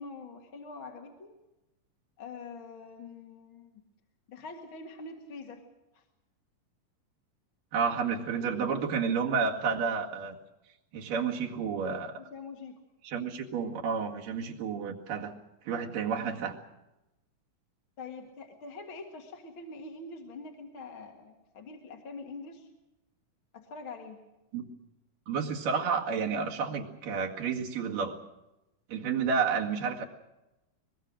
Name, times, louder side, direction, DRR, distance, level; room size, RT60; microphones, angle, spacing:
voice 1, 0.0-1.3 2.2-3.8 4.3-5.6 5.9-6.0 12.2-12.8 18.0-22.7 23.5-24.2, left 3 dB, 45° left, 2 dB, 2.2 m, -44 dB
voice 2, 7.7-10.4 10.9-12.2 13.0-15.3 15.7-16.6 24.5-24.6 25.3-28.2 28.9-30.1, right 6 dB, 80° right, 0 dB, 3.8 m, -30 dB
24.0 x 21.0 x 6.4 m, 0.97 s
omnidirectional pair, 3.8 m